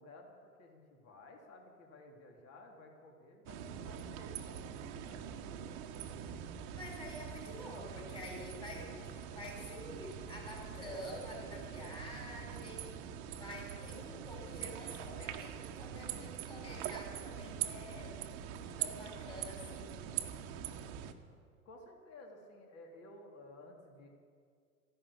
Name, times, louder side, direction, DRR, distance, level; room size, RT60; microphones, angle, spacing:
voice 1, 0.0-4.7 5.0-6.2 21.6-24.1, left 2 dB, 35° left, 1 dB, 3.1 m, -55 dB
sound 1, 3.5-21.1, right 9 dB, 50° right, 1.3 m, -43 dB
voice 2, 6.7-13.0 13.3-18.2 18.8-20.0, left 1 dB, 10° left, -2 dB, 5.4 m, -48 dB
14.5 x 11.0 x 8.6 m, 2.1 s
hypercardioid pair, 90°, 43 cm